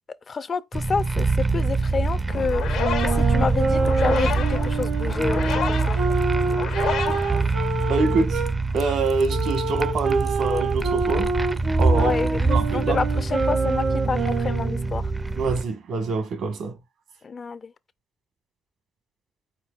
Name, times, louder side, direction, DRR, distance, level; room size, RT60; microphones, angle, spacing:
voice 1, 0.3-6.0 12.0-15.1 17.2-17.7, left 5 dB, 40° left, 0.4 m, -29 dB
sound 1, 0.7-15.6, right 3 dB, 20° right, 0.4 m, -24 dB
sound 2, 2.3-8.1, left 7 dB, 85° left, 1.1 m, -31 dB
sound 3, 2.7-8.5 9.3-14.9, right 3 dB, 60° right, 0.8 m, -27 dB
voice 2, 7.9-8.4 8.7-11.3 11.7-12.2 12.5-13.0 15.4-16.8, right 3 dB, 75° right, 1.3 m, -25 dB
4.4 x 4.3 x 2.4 m
cardioid pair, 90°, 0 cm